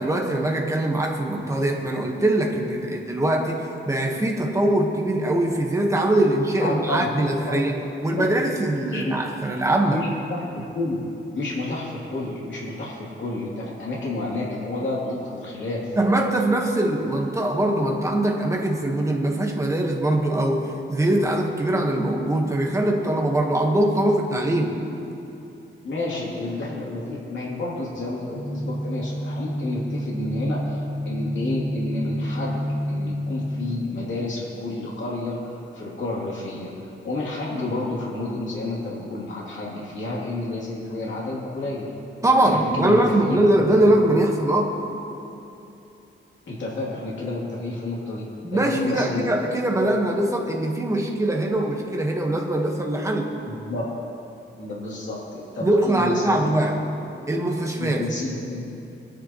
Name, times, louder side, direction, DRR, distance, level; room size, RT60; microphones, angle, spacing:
voice 1, 0.0-10.1 16.0-24.7 42.2-44.8 48.4-53.3 55.6-56.8 57.3-58.1, right 1 dB, 15° right, 1 dB, 1.3 m, -22 dB
voice 2, 6.6-7.1 7.5-7.6 8.9-9.1 9.9-10.4 10.7-11.0 11.3-15.9 25.8-36.7 37.0-41.9 42.4-44.0 46.5-48.3 48.5-49.4 49.8-49.9 53.5-53.8 54.6-56.7 57.8-58.6, left 2 dB, 65° left, -6 dB, 2.9 m, -30 dB
sound 1, 28.3-33.9, equal, 20° left, 1.4 m, -29 dB
21.0 x 10.0 x 3.0 m, 2.9 s
wide cardioid pair, 140°, 21 cm